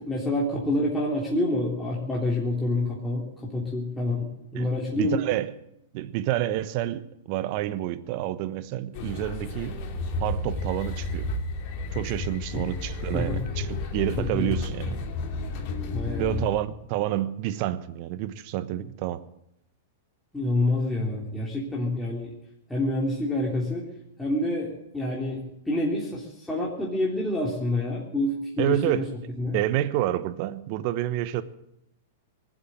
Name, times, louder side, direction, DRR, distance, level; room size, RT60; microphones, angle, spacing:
voice 1, 0.0-5.2 13.1-13.4 14.2-14.5 15.9-16.5 20.3-22.3 22.7-23.9 24.2-29.0 29.4-29.6, left 1 dB, 5° left, 3.5 m, -27 dB
voice 2, 4.9-5.5 5.9-9.8 10.2-11.3 11.9-15.0 16.2-19.2 28.6-29.1 29.5-31.4, right 13 dB, 50° right, 1.1 m, -28 dB
sound 1, 8.9-16.6, left 2 dB, 45° left, 2.9 m, -32 dB
19.5 x 7.9 x 9.2 m
hypercardioid pair, 120°, 0 cm